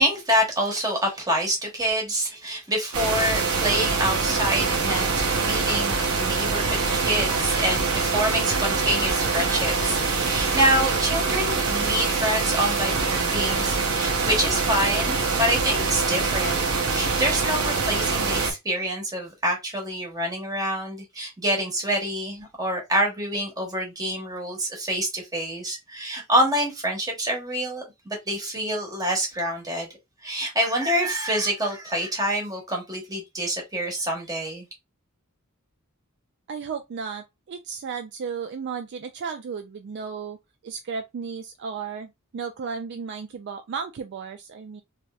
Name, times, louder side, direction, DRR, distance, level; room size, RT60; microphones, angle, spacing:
voice 1, 0.0-16.6 16.9-29.9 30.2-34.6, right 1 dB, 15° right, 1.1 m, -26 dB
sound 1, 2.9-18.5, right 4 dB, 85° right, 0.9 m, -24 dB
voice 2, 36.5-40.4 40.6-44.8, right 6 dB, 50° right, 0.3 m, -34 dB
3.2 x 2.7 x 2.3 m
head